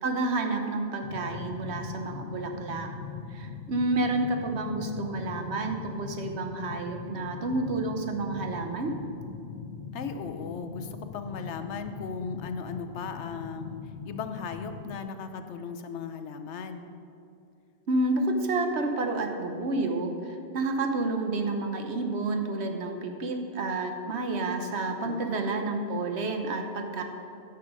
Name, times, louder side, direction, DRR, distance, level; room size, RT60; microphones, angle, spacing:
voice 1, 0.0-2.9 3.3-9.0 17.9-27.0, right 2 dB, 75° right, 5 dB, 1.2 m, -30 dB
sound 1, 1.0-15.0, left 5 dB, 60° left, 0.8 m, -41 dB
voice 2, 9.9-13.8 14.0-16.9 25.0-25.6, left 5 dB, 90° left, 8 dB, 1.0 m, -37 dB
9.5 x 7.0 x 6.3 m, 2.6 s
omnidirectional pair, 1.1 m